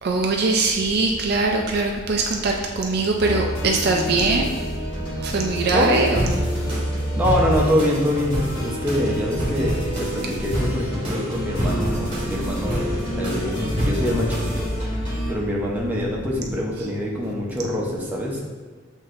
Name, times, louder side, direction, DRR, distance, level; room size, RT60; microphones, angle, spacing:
voice 1, 0.0-4.5 5.2-6.4 16.8-16.9, right 3 dB, 50° right, 1 dB, 0.3 m, -22 dB
sound 1, 0.6-16.6, left 1 dB, 40° left, 0.4 m, -39 dB
sound 2, 3.2-15.3, equal, 25° left, 1.4 m, -28 dB
sound 3, 6.1-14.8, equal, 25° right, 1.0 m, -29 dB
voice 2, 7.2-14.7 14.9-15.0 15.3-18.4, equal, 10° right, -4 dB, 0.6 m, -25 dB
7.6 x 2.7 x 2.5 m, 1.5 s
head